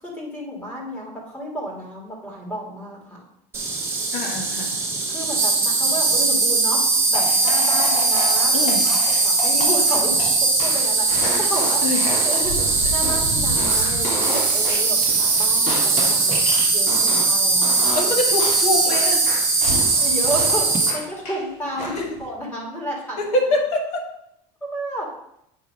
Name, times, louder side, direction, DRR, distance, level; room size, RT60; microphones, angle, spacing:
voice 1, 0.0-3.2 5.1-10.1 10.6-11.8 12.2-12.6 12.8-18.1 20.0-23.4 24.6-25.1, equal, 10° left, -4 dB, 1.8 m, -32 dB
Insect, 3.5-20.9, right 3 dB, 15° right, 1.1 m, -20 dB
voice 2, 4.1-4.7 8.5-8.9 11.8-12.1 17.9-19.2 21.9-22.1 23.2-24.1, left 2 dB, 45° left, 1 dB, 1.4 m, -24 dB
sound 1, 7.1-17.4 17.6-18.1 18.4-21.4 21.8-22.2, left 2 dB, 75° left, 2.8 m, -30 dB
8.6 x 2.9 x 5.2 m, 0.76 s
cardioid pair, 160°, 16 cm